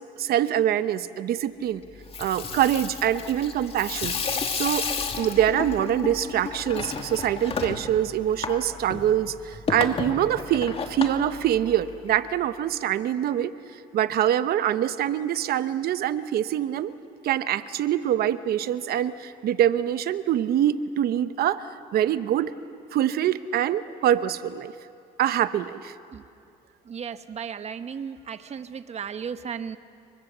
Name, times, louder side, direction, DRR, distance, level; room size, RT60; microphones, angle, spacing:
voice 1, 0.2-1.8 2.2-4.1 4.5-4.9 5.2-13.5 13.9-17.0 17.2-21.6 21.9-22.5 22.9-24.7 25.2-25.9, right 11 dB, 65° right, 13 dB, 1.0 m, -24 dB
Water tap faucet / Sink (filling or washing), 1.9-12.1, left 5 dB, 35° left, 2.3 m, -32 dB
voice 2, 26.9-29.8, right 7 dB, 40° right, 11 dB, 1.1 m, -35 dB
30.0 x 24.0 x 7.4 m, 2.5 s
cardioid pair, 110°, 17 cm